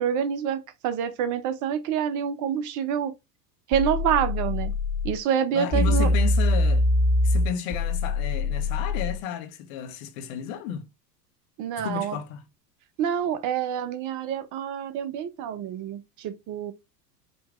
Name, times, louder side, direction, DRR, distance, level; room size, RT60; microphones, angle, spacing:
voice 1, 0.0-3.1 3.7-4.7 5.0-6.1 11.6-12.2 13.0-16.7, right 8 dB, 40° right, 0.7 m, -27 dB
sound 1, 3.7-5.2 5.7-9.2, left 2 dB, 25° left, 1.5 m, -23 dB
voice 2, 5.5-6.8 7.2-10.9 11.8-12.4, left 8 dB, 55° left, 1.1 m, -32 dB
5.2 x 2.9 x 2.4 m
hypercardioid pair, 90°, 49 cm